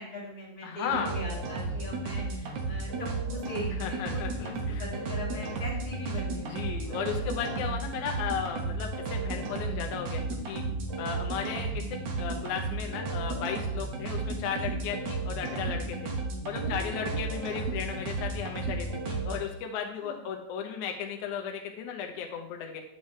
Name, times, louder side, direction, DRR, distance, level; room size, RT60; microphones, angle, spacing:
voice 1, 0.0-7.3 16.5-17.5 20.0-20.2, left 1 dB, 30° left, -3 dB, 2.0 m, -41 dB
voice 2, 0.6-1.1 3.8-4.8 6.4-10.6 11.0-11.9 12.2-16.1 16.5-22.8, left 7 dB, 70° left, 3 dB, 2.2 m, -35 dB
sound 1, 0.9-19.4, right 3 dB, 60° right, 1.9 m, -33 dB
8.5 x 7.4 x 3.2 m, 0.75 s
omnidirectional pair, 3.8 m